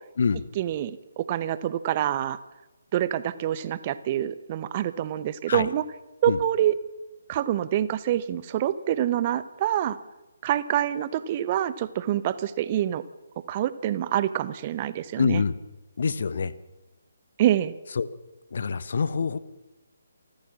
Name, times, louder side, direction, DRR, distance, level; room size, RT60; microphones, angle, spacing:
voice 1, 0.5-2.4 2.9-5.8 6.2-6.7 7.3-10.0 10.4-13.0 13.5-15.4 17.4-17.7, right 11 dB, 30° right, 15 dB, 0.9 m, -26 dB
voice 2, 15.2-15.6 16.0-16.5 18.0-18.1 18.5-19.4, left 5 dB, 50° left, 15 dB, 1.1 m, -25 dB
28.5 x 14.0 x 7.4 m, 1.1 s
figure-of-eight pair, 140°, 0 cm